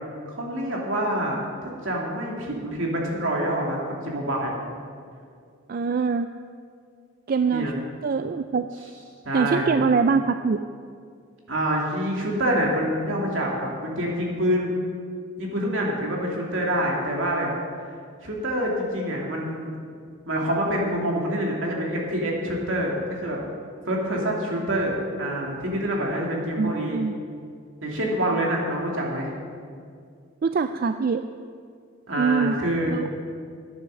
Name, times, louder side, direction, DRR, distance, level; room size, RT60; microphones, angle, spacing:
voice 1, 0.3-1.4 1.8-4.5 7.5-7.7 9.2-9.8 11.5-14.7 15.4-17.5 18.2-19.7 20.3-23.4 23.9-27.0 27.8-29.3 32.1-33.0, equal, 75° right, -2 dB, 2.5 m, -26 dB
voice 2, 5.7-6.3 7.3-7.7 8.0-8.7 9.3-10.6 26.6-27.1 30.4-31.2 32.2-32.6 32.9-33.2, right 5 dB, 45° right, 9 dB, 0.3 m, -23 dB
11.0 x 9.7 x 6.3 m, 2.2 s
head